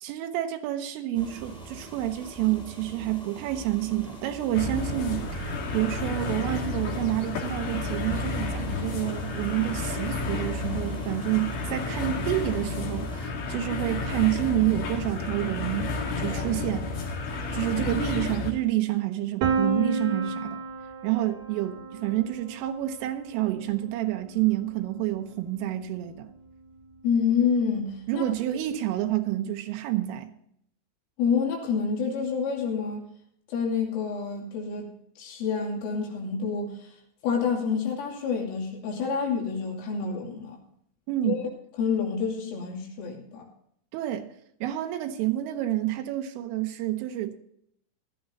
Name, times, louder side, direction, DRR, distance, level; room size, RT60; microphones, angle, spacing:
voice 1, 0.0-17.1 17.5-20.6 21.0-26.3 28.1-30.3 41.1-41.5 43.9-44.3 44.6-47.4, right 14 dB, 85° right, 3.5 m, -28 dB
sound 1, 1.1-13.3, right 2 dB, ahead, 2.0 m, -43 dB
sound 2, 4.5-18.5, left 3 dB, 55° left, 3.7 m, -31 dB
Piano, 19.4-25.2, right 4 dB, 65° right, 2.8 m, -32 dB
voice 2, 27.0-28.3 31.2-33.1 33.5-37.0 37.2-40.6 41.2-41.5 41.8-43.4, left 6 dB, 80° left, 5.2 m, -28 dB
17.0 x 12.5 x 2.7 m
omnidirectional pair, 5.7 m